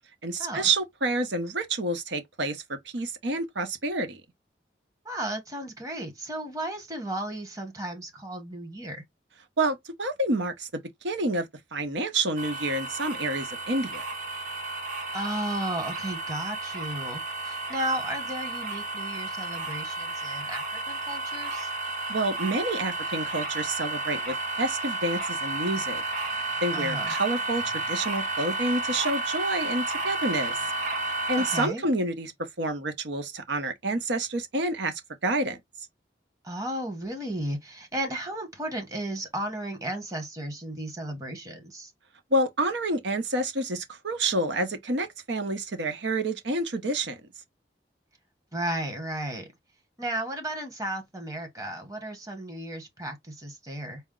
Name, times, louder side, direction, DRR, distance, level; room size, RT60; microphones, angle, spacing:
voice 1, 0.2-4.2 9.6-10.7 11.0-11.5 11.7-14.0 22.1-26.0 26.6-30.6 31.1-32.3 32.6-34.9 35.2-35.6 42.3-47.2, right 2 dB, 90° right, 0.8 m, -28 dB
voice 2, 5.0-9.0 15.1-21.7 26.7-27.1 31.4-31.8 36.4-41.9 48.5-49.5 50.0-54.0, right 1 dB, 20° right, 1.1 m, -34 dB
sound 1, 12.4-31.7, right 3 dB, 45° right, 1.0 m, -32 dB
4.3 x 2.0 x 3.7 m
head